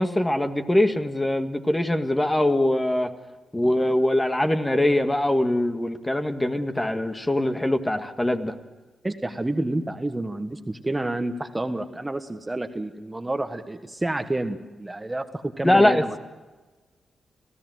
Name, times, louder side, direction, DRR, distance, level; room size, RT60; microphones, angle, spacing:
voice 1, 0.0-3.1 3.5-8.5 15.6-16.2, left 1 dB, 15° left, 6 dB, 1.8 m, -22 dB
voice 2, 9.0-16.1, right 1 dB, 20° right, 8 dB, 1.4 m, -29 dB
26.0 x 16.0 x 7.9 m, 1.2 s
cardioid pair, 55°, 0 cm